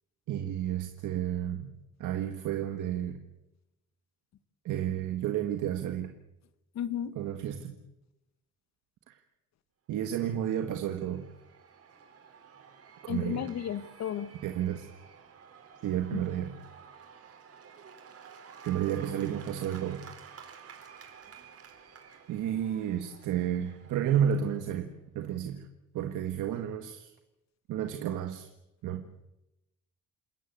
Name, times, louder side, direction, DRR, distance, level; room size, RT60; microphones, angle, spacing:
voice 1, 0.3-1.7 2.0-3.2 4.7-6.1 7.2-7.8 9.1-9.2 9.9-11.3 13.0-13.5 14.4-14.9 15.8-16.6 18.6-20.0 22.3-25.7 25.9-27.1 27.7-28.5 28.8-29.0, right 10 dB, 75° right, 6 dB, 1.8 m, -31 dB
voice 2, 6.7-7.1 13.1-14.3 16.1-16.2, left 9 dB, 60° left, 14 dB, 1.4 m, -33 dB
Cheering / Applause / Crowd, 10.1-24.8, right 7 dB, 50° right, 4.5 m, -52 dB
28.0 x 13.5 x 9.5 m, 0.96 s
cardioid pair, 105°, 30 cm